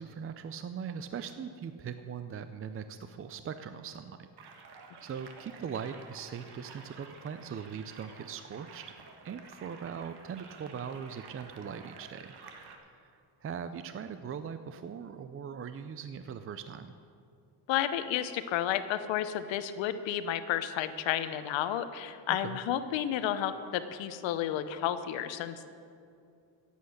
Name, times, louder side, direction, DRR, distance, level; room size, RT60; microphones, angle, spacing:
voice 1, 0.0-4.3 5.0-8.9 9.2-12.3 12.8-13.1 13.4-16.9 22.4-22.6, right 7 dB, 30° right, 10 dB, 0.5 m, -40 dB
sound 1, 4.4-12.8, right 5 dB, 60° right, 1.6 m, -51 dB
voice 2, 17.7-25.7, left 11 dB, 80° left, 11 dB, 0.9 m, -31 dB
16.5 x 8.3 x 6.5 m, 2.4 s
cardioid pair, 115°, 45 cm